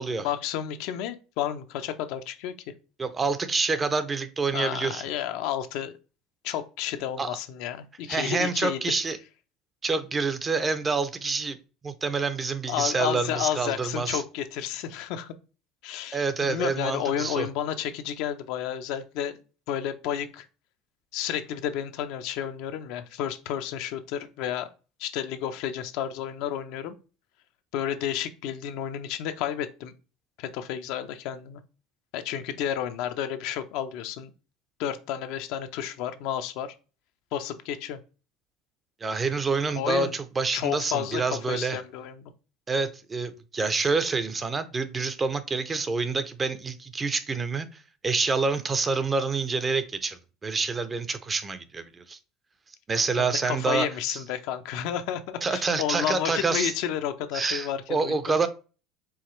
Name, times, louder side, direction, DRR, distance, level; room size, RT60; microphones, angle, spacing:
voice 1, 0.2-2.5 4.5-5.9 6.4-9.0 12.7-15.3 15.8-19.4 19.7-20.4 21.1-24.7 25.0-27.0 27.7-29.9 30.4-31.6 32.1-34.3 34.8-36.7 37.3-38.0 39.8-40.2 40.5-41.2 41.5-42.3 53.2-58.2, left 10 dB, 70° left, 0.5 m, -31 dB
voice 2, 3.0-5.0 7.2-7.3 8.1-9.2 9.8-11.6 11.8-14.2 16.1-17.5 39.0-41.8 42.7-47.7 48.0-52.2 52.9-54.2 55.4-56.7 57.3-58.5, right 4 dB, 20° right, 0.5 m, -27 dB
4.7 x 3.3 x 3.1 m
supercardioid pair, 120°, 0 cm